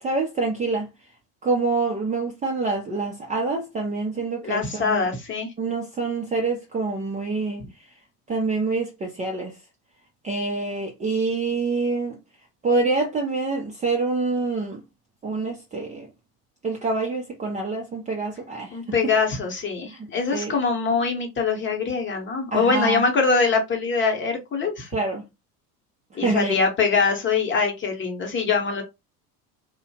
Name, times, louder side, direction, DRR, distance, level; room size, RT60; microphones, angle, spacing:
voice 1, 0.0-0.9 1.4-5.1 5.6-7.7 8.3-9.5 10.2-12.2 12.6-14.8 15.2-16.1 16.6-18.8 19.9-20.6 22.5-23.0 24.9-25.2 26.2-26.6, right 3 dB, 15° right, 0.5 m, -26 dB
voice 2, 4.4-5.5 18.7-24.9 26.1-28.8, left 4 dB, 25° left, 1.0 m, -23 dB
2.6 x 2.2 x 2.7 m
hypercardioid pair, 85°, 47 cm